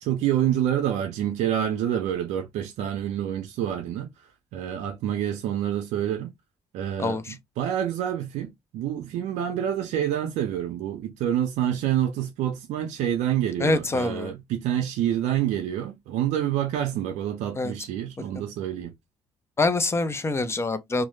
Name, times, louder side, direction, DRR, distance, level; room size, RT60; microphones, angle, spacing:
voice 1, 0.0-4.1 4.5-6.3 6.7-18.9, right 10 dB, 90° right, 0.4 m, -27 dB
voice 2, 7.0-7.3 13.6-14.3 17.5-17.7 18.3-18.4 19.6-21.0, left 2 dB, 20° left, 0.5 m, -25 dB
2.2 x 2.0 x 3.0 m
cardioid pair, 85°, 12 cm